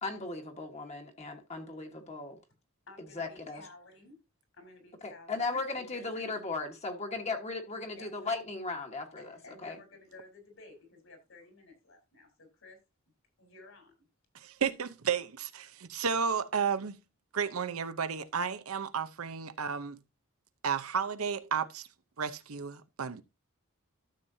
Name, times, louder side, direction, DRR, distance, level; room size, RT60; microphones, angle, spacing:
voice 1, 0.0-2.4 3.2-3.6 5.0-9.3 9.6-9.8, left 3 dB, 30° left, 1.4 m, -37 dB
voice 2, 2.9-4.2 4.5-6.4 8.0-8.1 9.2-12.8 13.4-14.1, left 2 dB, 65° left, 3.8 m, -54 dB
voice 3, 14.3-17.0 17.3-20.0 20.6-21.9 22.2-23.2, right 6 dB, 85° right, 0.7 m, -32 dB
13.0 x 7.2 x 2.7 m
head